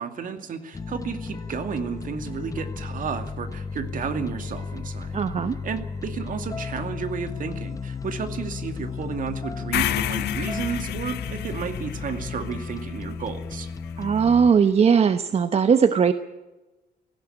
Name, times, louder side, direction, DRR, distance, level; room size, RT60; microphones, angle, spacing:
voice 1, 0.0-5.2 5.6-13.7, right 6 dB, 55° right, 8 dB, 2.4 m, -32 dB
sound 1, 0.7-14.5, left 5 dB, 20° left, 0.8 m, -34 dB
voice 2, 5.1-5.6 14.0-16.1, right 6 dB, 40° right, 11 dB, 0.9 m, -19 dB
sound 2, 9.7-13.9, left 11 dB, 90° left, 1.2 m, -30 dB
18.0 x 16.5 x 8.9 m, 1.1 s
cardioid pair, 140°, 17 cm